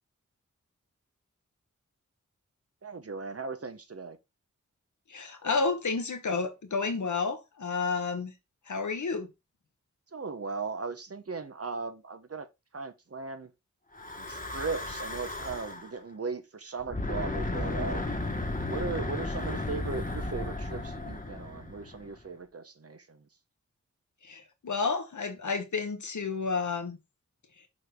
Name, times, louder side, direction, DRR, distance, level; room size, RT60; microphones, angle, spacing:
voice 1, 2.8-4.2 10.1-12.5 12.7-13.5 14.2-18.2 18.7-23.3, right 4 dB, 50° right, 1.1 m, -37 dB
voice 2, 5.1-8.3 8.7-9.3 24.2-27.0, left 4 dB, 80° left, 1.3 m, -31 dB
Breathing / Wind, 13.9-15.9 16.8-22.2, left 2 dB, 30° left, 1.5 m, -34 dB
6.4 x 4.2 x 3.7 m
cardioid pair, 45°, 29 cm